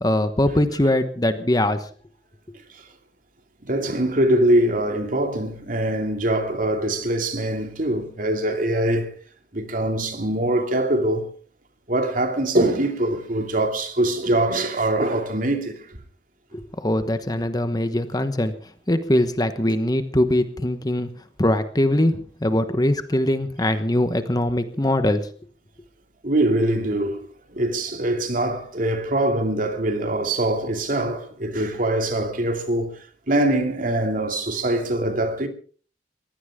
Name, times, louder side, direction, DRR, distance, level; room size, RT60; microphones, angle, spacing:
voice 1, 0.0-1.9 16.5-18.5 18.9-21.1 21.4-25.2, left 1 dB, 20° left, 1.1 m, -22 dB
voice 2, 3.6-9.2 9.5-11.3 11.9-15.8 23.6-23.7 26.2-27.3 27.5-33.0 33.3-35.5, right 1 dB, 50° right, 2.6 m, -23 dB
21.5 x 16.5 x 3.7 m
head